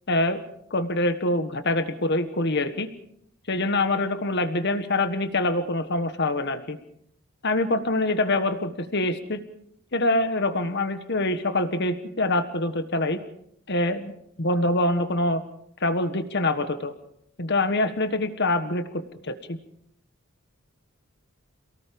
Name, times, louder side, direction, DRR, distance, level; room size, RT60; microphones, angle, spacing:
voice 1, 0.1-0.4 0.7-2.9 3.5-6.8 7.4-9.4 9.9-13.2 13.7-14.1 14.4-15.4 15.8-16.9 17.4-19.6, left 2 dB, 50° left, 9 dB, 1.5 m, -25 dB
28.0 x 18.5 x 5.3 m, 0.70 s
head